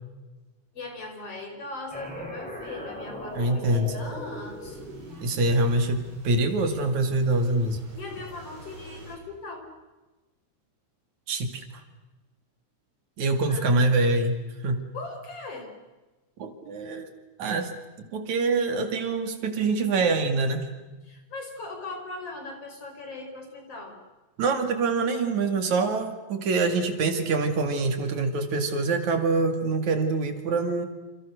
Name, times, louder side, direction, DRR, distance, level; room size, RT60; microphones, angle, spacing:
voice 1, 0.7-4.8 7.9-9.7 13.4-13.8 14.9-15.7 21.1-24.0, left 2 dB, 50° left, 4 dB, 5.6 m, -39 dB
sound 1, 1.9-7.2, equal, ahead, 5.9 m, -40 dB
sound 2, 3.3-9.2, right 1 dB, 55° right, 5.9 m, -49 dB
voice 2, 3.3-4.0 5.2-7.8 11.3-11.6 13.2-14.4 14.6-14.8 16.4-17.1 17.4-17.7 18.0-20.7 24.4-30.9, right 3 dB, 70° right, 6 dB, 3.7 m, -25 dB
28.5 x 27.5 x 6.5 m, 1.2 s
omnidirectional pair, 3.4 m